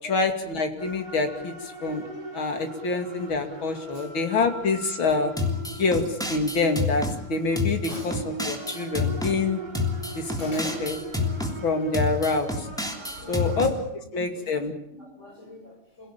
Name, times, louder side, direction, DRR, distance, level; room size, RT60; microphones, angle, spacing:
voice 1, 0.1-1.5 1.8-2.1 2.3-5.3 5.8-6.0 6.3-7.0 7.3-7.8 8.5-9.6 10.1-11.0 11.6-12.7 13.3-13.7 14.1-14.7, left 3 dB, 65° left, 6 dB, 3.3 m, -26 dB
sound 1, 0.8-13.6, right 4 dB, 50° right, 5.0 m, -41 dB
sound 2, 5.4-7.2 7.6-9.4 9.7-11.6 11.9-13.7, left 3 dB, ahead, 3.0 m, -28 dB
voice 2, 7.9-8.2 10.4-10.9 13.2-13.7 14.0-14.5 14.9-16.1, left 1 dB, 35° left, 1 dB, 8.0 m, -44 dB
28.0 x 17.5 x 8.9 m, 0.81 s
omnidirectional pair, 2.3 m